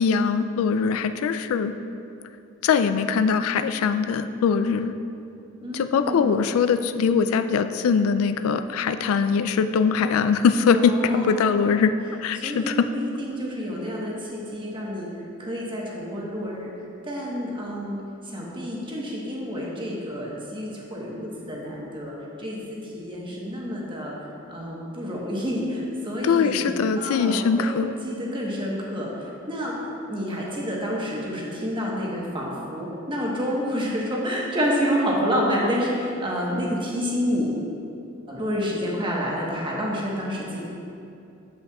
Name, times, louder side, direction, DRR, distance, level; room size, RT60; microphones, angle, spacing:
voice 1, 0.0-1.7 2.6-4.9 5.7-11.9 12.2-12.9 26.2-27.9, left 6 dB, 85° left, 10 dB, 0.3 m, -22 dB
voice 2, 5.6-6.5 10.7-11.9 12.3-16.7 17.0-24.1 24.5-27.7 28.0-37.5 38.3-40.6, equal, 25° right, -4 dB, 1.1 m, -29 dB
8.3 x 7.7 x 2.3 m, 2.6 s
head